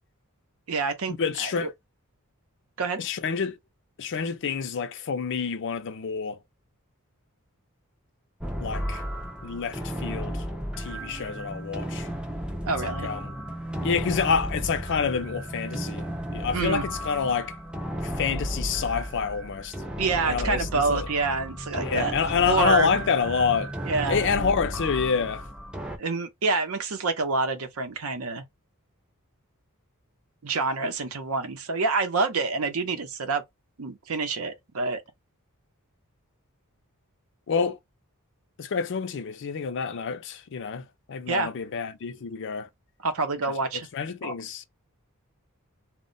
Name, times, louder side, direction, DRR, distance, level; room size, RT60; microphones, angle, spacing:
voice 1, 0.7-1.1 1.4-1.7 2.8-3.0 12.6-13.1 16.5-16.8 20.0-22.9 23.9-24.3 26.0-28.4 30.4-33.4 33.8-35.0 41.3-41.5 43.0-43.9 44.2-44.3, right 3 dB, 70° right, 0.6 m, -27 dB
voice 2, 1.2-1.7 3.0-3.6 4.0-6.4 8.6-9.0 9.4-10.5 10.8-12.1 12.8-13.3 13.8-17.6 18.0-19.7 20.2-21.1 21.8-23.7 24.1-25.5 37.5-37.8 38.6-42.7 43.9-44.7, left 6 dB, 55° left, 0.4 m, -28 dB
sound 1, 8.4-26.0, equal, 5° right, 0.4 m, -34 dB
2.1 x 2.1 x 3.7 m
head